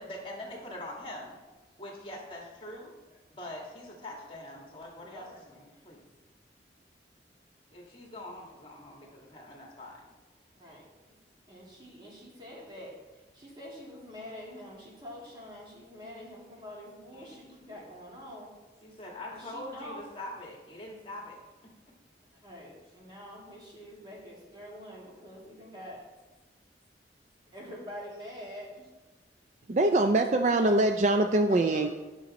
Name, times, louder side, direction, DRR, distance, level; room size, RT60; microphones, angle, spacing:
voice 1, 0.0-1.4 1.8-2.9 3.3-6.0 7.7-10.0 17.1-17.8 18.8-21.4 31.5-31.9, left 1 dB, 30° left, -1 dB, 1.6 m, -43 dB
voice 2, 11.5-12.9 13.3-18.5 19.3-20.0 22.4-26.0 27.5-28.9, equal, 25° right, -4 dB, 2.2 m, -46 dB
voice 3, 29.7-31.9, right 2 dB, 40° right, 6 dB, 0.4 m, -23 dB
10.5 x 6.4 x 4.1 m, 1.2 s
head